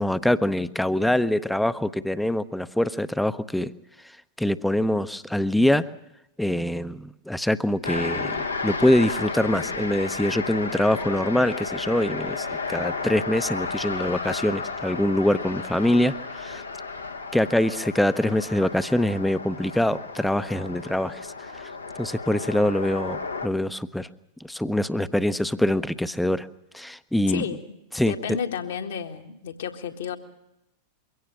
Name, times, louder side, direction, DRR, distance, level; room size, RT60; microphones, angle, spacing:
voice 1, 0.0-3.7 4.4-5.9 6.4-16.6 17.3-21.2 22.0-24.1 24.4-26.5 26.7-27.4 27.9-28.1, left 1 dB, 5° left, 14 dB, 0.7 m, -24 dB
sound 1, 7.8-23.5, left 4 dB, 80° left, 1.3 m, -33 dB
voice 2, 27.3-27.6 28.1-30.2, left 7 dB, 60° left, 5 dB, 1.8 m, -31 dB
23.0 x 17.0 x 7.6 m, 0.88 s
figure-of-eight pair, 90°, 0 cm